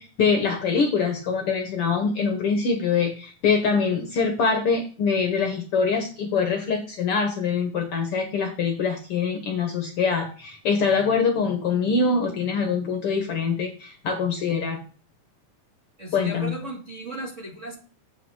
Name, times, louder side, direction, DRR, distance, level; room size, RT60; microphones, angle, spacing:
voice 1, 0.0-14.8 16.1-16.6, left 5 dB, 60° left, 4 dB, 1.7 m, -24 dB
voice 2, 16.0-17.8, right 2 dB, 30° right, -2 dB, 1.7 m, -35 dB
8.1 x 5.6 x 5.5 m, 0.38 s
omnidirectional pair, 3.5 m